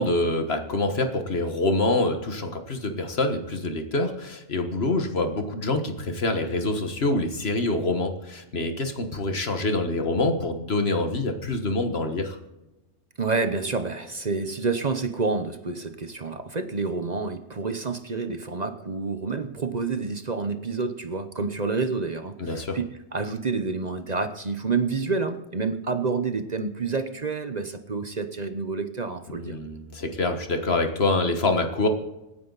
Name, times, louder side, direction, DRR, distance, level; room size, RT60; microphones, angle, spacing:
voice 1, 0.0-12.4 22.4-22.8 29.4-31.9, left 2 dB, 60° left, 6 dB, 1.7 m, -26 dB
voice 2, 13.2-29.6, right 4 dB, 40° right, 8 dB, 1.0 m, -28 dB
26.5 x 9.7 x 4.0 m, 1.0 s
omnidirectional pair, 1.2 m